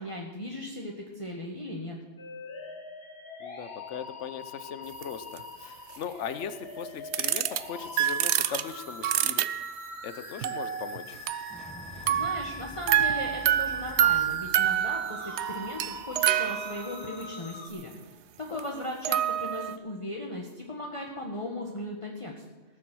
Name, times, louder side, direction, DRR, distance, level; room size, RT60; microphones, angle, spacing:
voice 1, 0.0-2.0 12.1-18.2 18.5-22.3, left 1 dB, 25° left, -1 dB, 1.5 m, -37 dB
sound 1, 2.2-17.7, left 3 dB, 60° left, 2.0 m, -43 dB
voice 2, 3.4-9.5 10.0-11.2 18.5-18.7, left 7 dB, 85° left, 12 dB, 1.1 m, -39 dB
sound 2, 5.0-5.1 5.4-5.5 7.1-7.6 8.0-9.9 10.4-11.8 12.1-17.2 18.6-18.7 19.0-19.8, right 10 dB, 75° right, 0.9 m, -27 dB
Fire / Explosion, 11.0-16.9, left 1 dB, 5° left, 1.3 m, -49 dB
19.0 x 7.3 x 6.1 m, 1.3 s
omnidirectional pair, 1.2 m